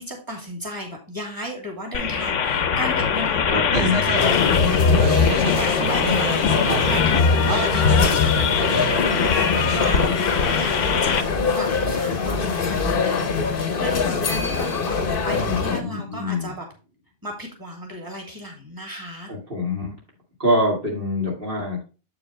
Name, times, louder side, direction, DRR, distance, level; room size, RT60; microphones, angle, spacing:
voice 1, 0.0-16.7 17.2-19.3, equal, 15° right, 0 dB, 2.9 m, -35 dB
sound 1, 1.9-11.2, left 6 dB, 80° left, 1.2 m, -21 dB
voice 2, 3.5-4.2 15.3-16.5 19.3-20.0 20.4-21.8, left 1 dB, 50° right, -3 dB, 2.5 m, -25 dB
sound 2, 3.7-11.3, right 6 dB, 75° right, 1.3 m, -31 dB
sound 3, 4.1-15.8, left 5 dB, 50° left, 1.1 m, -24 dB
8.2 x 6.9 x 3.2 m, 0.32 s
omnidirectional pair, 1.3 m